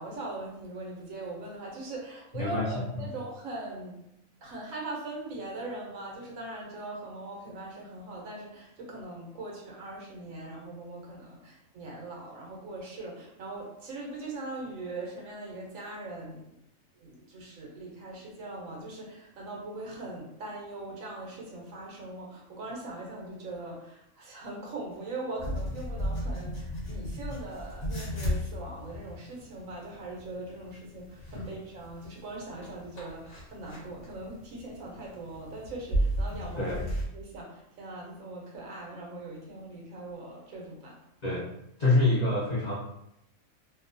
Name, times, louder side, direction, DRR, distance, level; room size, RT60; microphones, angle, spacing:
voice 1, 0.0-4.0 4.4-16.6 17.0-36.8 37.1-41.0, right 2 dB, 75° right, -2 dB, 1.1 m, -41 dB
voice 2, 2.3-2.7 2.9-3.1 31.3-31.4 36.6-36.8 41.2-41.5 41.8-42.8, left 2 dB, 80° left, -6 dB, 0.3 m, -26 dB
sound 1, 25.4-37.1, equal, 55° left, 1.4 m, -35 dB
2.7 x 2.1 x 2.5 m, 0.81 s
omnidirectional pair, 1.4 m